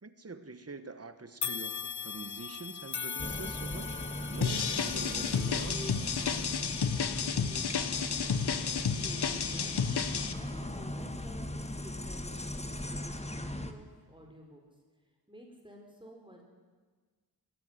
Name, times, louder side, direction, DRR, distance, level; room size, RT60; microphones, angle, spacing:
voice 1, 0.0-6.2, right 3 dB, 40° right, 10 dB, 1.4 m, -45 dB
sound 1, 1.4-10.7 11.2-11.4 12.4-12.5, left 6 dB, 50° left, 0.8 m, -42 dB
sound 2, 3.2-13.7, left 1 dB, 15° left, 1.6 m, -39 dB
sound 3, 4.4-10.3, left 6 dB, 90° left, 1.2 m, -31 dB
voice 2, 7.9-9.7 10.3-14.6 15.3-16.4, equal, 15° right, 1 dB, 4.5 m, -52 dB
20.5 x 15.0 x 9.8 m, 1.5 s
wide cardioid pair, 60°, 38 cm